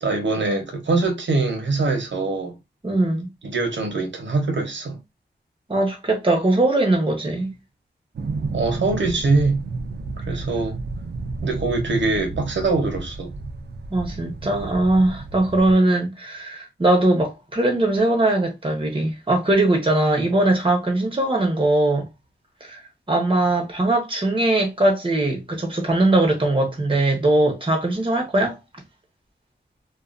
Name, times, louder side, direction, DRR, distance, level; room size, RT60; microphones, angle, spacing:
voice 1, 0.0-2.5 3.4-5.0 8.5-9.6 10.3-10.8 11.4-13.3, right 3 dB, 90° right, 0.7 m, -23 dB
voice 2, 2.8-3.3 5.7-7.5 13.9-22.1 22.6-22.8 23.1-28.6, right 2 dB, 30° right, 0.9 m, -20 dB
sound 1, 8.1-15.7, right 3 dB, 65° right, 0.4 m, -31 dB
2.4 x 2.2 x 2.4 m
wide cardioid pair, 80°, 19 cm